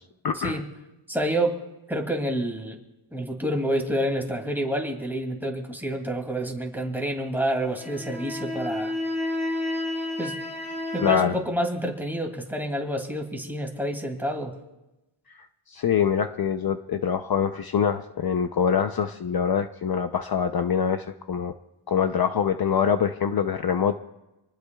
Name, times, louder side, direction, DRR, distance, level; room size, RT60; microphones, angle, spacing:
voice 1, 0.2-0.6 11.0-11.3 15.4-21.5 21.9-24.0, left 7 dB, 45° left, 8 dB, 0.7 m, -24 dB
voice 2, 1.1-1.6 1.9-2.8 3.1-8.9 10.2-10.3 10.9-14.5, right 1 dB, 5° right, 1 dB, 2.5 m, -28 dB
sound 1, 7.7-11.2, left 2 dB, 15° left, 2.5 m, -30 dB
27.5 x 19.5 x 2.3 m, 0.98 s
wide cardioid pair, 140°, 50 cm